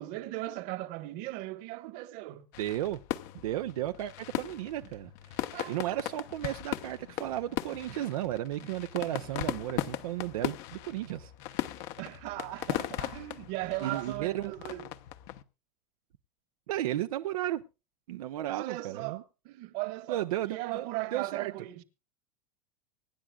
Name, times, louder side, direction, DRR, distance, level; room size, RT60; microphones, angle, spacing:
voice 1, 0.0-2.5 5.5-6.0 12.0-14.9 18.5-21.8, right 18 dB, 60° right, 1.5 m, -38 dB
sound 1, 2.5-15.4, left 14 dB, 60° left, 1.0 m, -38 dB
voice 2, 2.6-3.0 3.4-11.9 13.8-14.5 16.7-17.6 18.1-19.2 20.1-21.5, right 14 dB, 90° right, 0.8 m, -34 dB
24.5 x 10.0 x 2.4 m
supercardioid pair, 130°, 18 cm